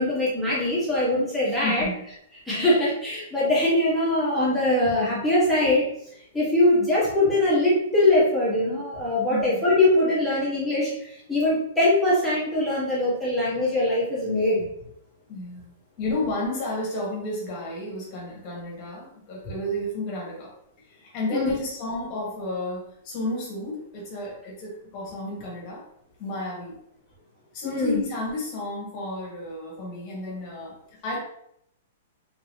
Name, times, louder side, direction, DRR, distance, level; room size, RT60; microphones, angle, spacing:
voice 1, 0.0-1.9 2.5-5.9 6.3-14.6 21.3-21.5 27.6-28.0, left 1 dB, ahead, -10 dB, 1.2 m, -22 dB
voice 2, 1.4-2.0 9.3-9.5 15.3-15.7 16.0-20.5 20.9-25.8 26.2-26.7 27.5-30.8 31.0-31.2, left 2 dB, 25° left, -3 dB, 1.3 m, -32 dB
3.3 x 2.9 x 3.1 m, 0.73 s
hypercardioid pair, 175°, 0 cm